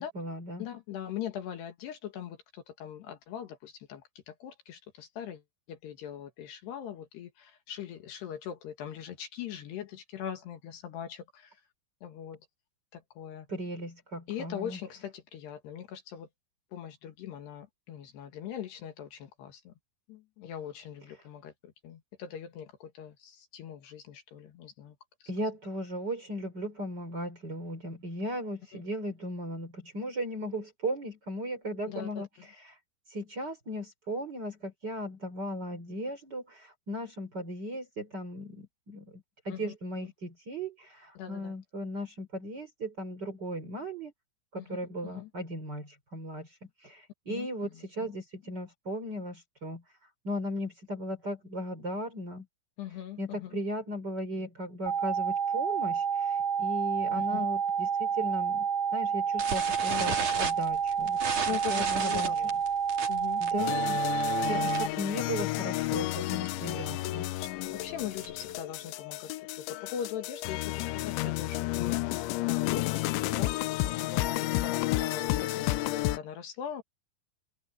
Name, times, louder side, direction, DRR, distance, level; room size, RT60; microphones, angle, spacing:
voice 1, 0.0-0.6 13.5-14.8 25.3-32.3 33.1-44.1 44.5-49.8 50.2-52.5 53.2-61.2 61.7-62.3 63.4-64.0 64.5-67.3, equal, 25° right, 3.5 m, -37 dB
voice 2, 0.6-5.4 5.7-11.6 12.0-12.4 12.9-13.5 14.3-16.3 16.7-19.7 20.1-25.0 25.2-25.3 28.7-28.8 31.9-32.3 39.5-39.7 40.0-40.1 41.2-41.5 44.6-44.8 45.0-45.3 47.3-48.1 52.8-53.6 57.2-57.5 59.9-60.2 61.5-62.6 63.1-63.6 67.4-76.8, left 9 dB, 65° left, 3.6 m, -41 dB
sound 1, 54.9-64.9, right 7 dB, 65° right, 2.4 m, -29 dB
sound 2, 59.4-65.0 65.3-65.6 65.8-65.9 66.2-66.5 67.0-68.5, right 5 dB, 40° right, 4.6 m, -35 dB
sound 3, 63.6-76.2, left 18 dB, 85° left, 3.0 m, -31 dB
omnidirectional pair, 5.4 m